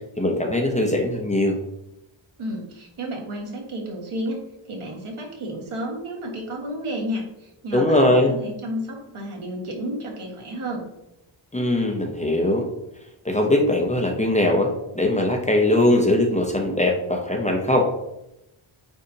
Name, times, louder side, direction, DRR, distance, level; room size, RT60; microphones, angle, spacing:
voice 1, 0.2-1.6 7.7-8.3 11.5-12.7 13.2-17.9, left 1 dB, 15° left, 1 dB, 0.7 m, -20 dB
voice 2, 2.4-4.4 4.7-10.8, equal, 80° right, 0 dB, 1.8 m, -31 dB
8.9 x 4.2 x 2.8 m, 0.89 s
wide cardioid pair, 165°, 50 cm